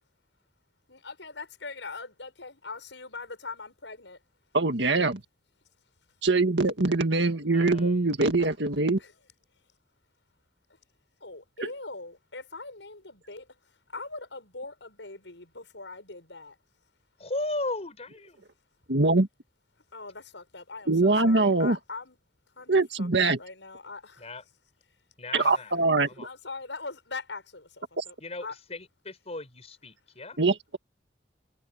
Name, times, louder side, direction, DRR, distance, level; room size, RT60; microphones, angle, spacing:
voice 1, 0.9-4.2 9.0-9.1 11.2-16.6 19.9-22.2 22.5-24.3 25.4-25.6 26.2-28.1 28.4-28.6, left 3 dB, 90° left, 6.9 m, -41 dB
voice 2, 4.5-5.2 6.2-9.0 18.9-19.3 20.9-21.8 22.7-23.4 25.3-26.3 28.0-28.1 30.4-30.8, right 3 dB, 75° right, 1.9 m, -23 dB
voice 3, 7.5-8.2 17.2-18.4 24.2-24.4 25.2-25.7 26.0-26.3 28.2-30.4, left 2 dB, 35° left, 5.3 m, -36 dB
head